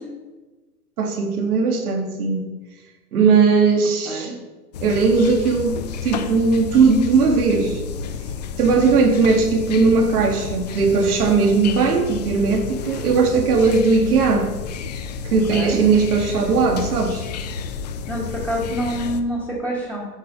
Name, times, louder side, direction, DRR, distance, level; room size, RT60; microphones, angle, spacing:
voice 1, 1.0-2.4 3.1-4.4 4.8-7.8 8.6-14.5 15.2-17.3, right 4 dB, 65° right, 3 dB, 1.9 m, -18 dB
sound 1, 4.7-19.2, left 6 dB, 30° left, 0.4 m, -31 dB
voice 2, 15.5-15.8 18.1-20.1, equal, 5° right, -7 dB, 1.6 m, -26 dB
8.6 x 5.3 x 5.4 m, 1.2 s
hypercardioid pair, 130°, 48 cm